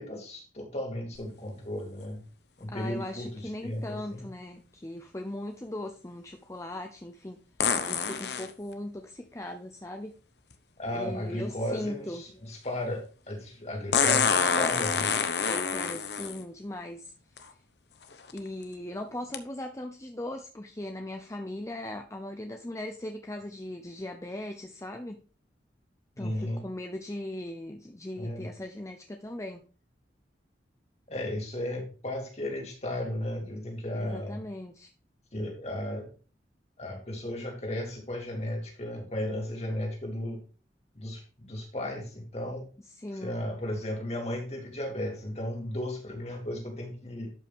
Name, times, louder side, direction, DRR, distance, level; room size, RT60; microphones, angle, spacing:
voice 1, 0.0-2.2 2.6-4.3 10.8-15.1 26.2-26.7 28.2-28.5 31.1-34.4 35.3-36.1 36.8-40.4 40.9-42.7 43.2-47.3, left 1 dB, 35° left, 1 dB, 2.7 m, -35 dB
sound 1, 1.1-1.2 7.6-8.5 10.5-10.6 13.9-16.4 17.4-17.5 18.1-18.4 19.3-19.4, left 6 dB, 70° left, 0.9 m, -26 dB
voice 2, 2.7-7.4 7.9-10.1 10.9-12.2 15.4-17.4 18.3-25.2 26.2-29.6 33.9-34.9 42.8-43.4, left 1 dB, 15° left, 5 dB, 0.7 m, -39 dB
12.0 x 5.5 x 3.6 m, 0.37 s
head